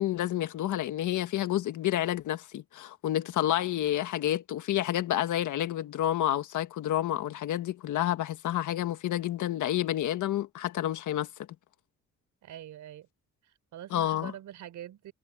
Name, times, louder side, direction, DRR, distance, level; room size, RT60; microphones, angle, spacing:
voice 1, 0.0-11.3 13.9-14.3, left 12 dB, 75° left, 1.7 m, -29 dB
voice 2, 12.4-13.1 13.7-15.1, right 11 dB, 75° right, 4.4 m, -44 dB
cardioid pair, 90°, 30 cm